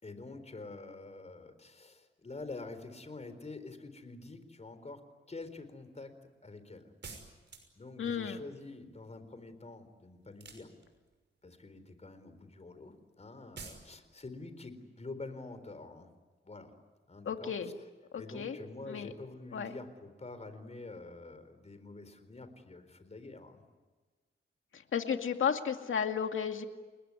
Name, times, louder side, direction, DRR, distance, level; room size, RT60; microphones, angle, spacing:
voice 1, 0.0-5.0 5.3-6.1 6.4-6.9 7.8-10.8 11.4-16.1 16.4-16.7 17.1-17.7 18.1-23.6, left 3 dB, 35° left, 10 dB, 4.1 m, -47 dB
sound 1, 7.0-7.9 10.3-11.1 13.6-13.9, right 4 dB, 60° right, 6.1 m, -48 dB
voice 2, 8.0-8.4 17.3-17.7 18.1-18.6 18.9-19.1 19.5-19.7 24.7-26.6, left 7 dB, 80° left, 6 dB, 2.3 m, -33 dB
29.5 x 20.5 x 9.7 m, 1.3 s
cardioid pair, 85°, 20 cm